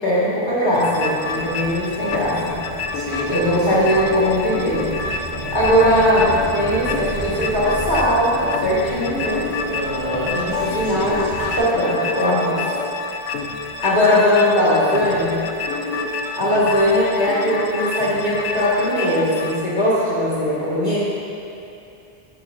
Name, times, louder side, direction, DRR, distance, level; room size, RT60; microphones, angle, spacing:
voice 1, 0.0-2.5 3.3-4.9 5.5-9.5 10.3-12.6 13.8-15.4 16.4-21.0, equal, 50° left, -9 dB, 2.1 m, -19 dB
sound 1, 0.7-19.6, left 3 dB, 85° left, 0.9 m, -28 dB
sound 2, 1.2-11.6, right 2 dB, 70° right, 1.4 m, -33 dB
voice 2, 2.9-3.3 9.7-11.1, equal, 30° right, -7 dB, 1.4 m, -29 dB
11.5 x 7.5 x 2.7 m, 2.7 s
omnidirectional pair, 1.0 m